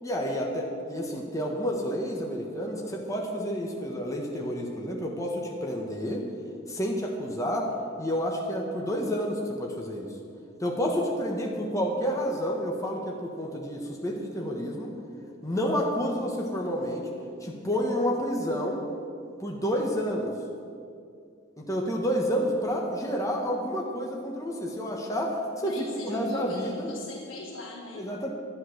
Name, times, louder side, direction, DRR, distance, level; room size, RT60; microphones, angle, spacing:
voice 1, 0.0-6.3 6.7-10.2 10.6-14.9 15.4-17.1 17.4-18.8 19.4-20.3 21.6-25.8 26.0-26.9 27.9-28.3, equal, 15° left, -1 dB, 1.4 m, -29 dB
voice 2, 25.6-28.1, left 2 dB, 70° left, -2 dB, 1.5 m, -40 dB
11.5 x 10.5 x 6.6 m, 2.4 s
head